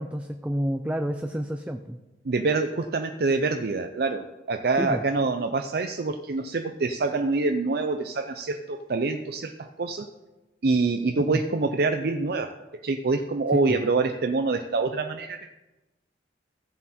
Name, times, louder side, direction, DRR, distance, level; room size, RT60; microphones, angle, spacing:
voice 1, 0.0-2.0 4.8-5.0 11.3-11.4 13.5-13.8, equal, 5° right, 5 dB, 0.4 m, -29 dB
voice 2, 2.2-10.1 10.6-15.5, right 3 dB, 60° right, 6 dB, 0.5 m, -26 dB
15.0 x 7.3 x 4.3 m, 1.1 s
head